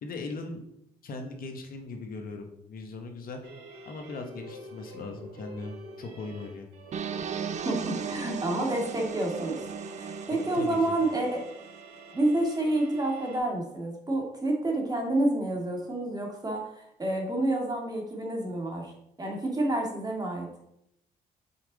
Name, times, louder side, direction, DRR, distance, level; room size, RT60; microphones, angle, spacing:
voice 1, 0.0-0.6 1.0-3.4 3.9-6.7 10.5-10.8, left 3 dB, 60° left, 4 dB, 1.0 m, -39 dB
sound 1, 3.4-13.4, equal, 85° right, 1.2 m, -46 dB
sound 2, 6.9-11.8, right 7 dB, 45° right, 0.5 m, -37 dB
voice 2, 7.6-9.6 10.0-11.4 12.1-18.9 19.2-20.5, right 1 dB, 25° right, 0 dB, 1.9 m, -29 dB
5.6 x 4.5 x 3.9 m, 0.76 s
supercardioid pair, 60°, 17 cm